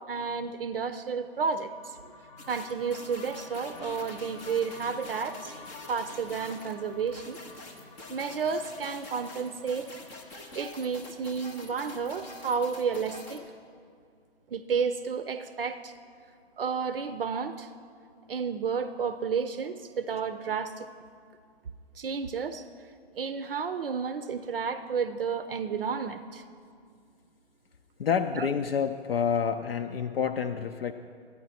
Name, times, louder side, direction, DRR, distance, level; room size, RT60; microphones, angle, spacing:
voice 1, 0.1-2.0 2.5-5.5 5.9-7.4 8.1-9.9 10.5-13.4 14.5-15.9 16.6-17.7 18.3-20.9 22.0-22.6 23.2-26.4 28.4-28.5, right 5 dB, 60° right, 11 dB, 0.6 m, -31 dB
sound 1, 1.2-11.5, left 4 dB, 35° left, 0.8 m, -51 dB
sound 2, 2.4-13.4, left 2 dB, 10° left, 0.4 m, -46 dB
voice 2, 28.0-30.9, left 7 dB, 65° left, 6 dB, 0.5 m, -28 dB
13.0 x 9.4 x 4.2 m, 2.2 s
figure-of-eight pair, 120°, 32 cm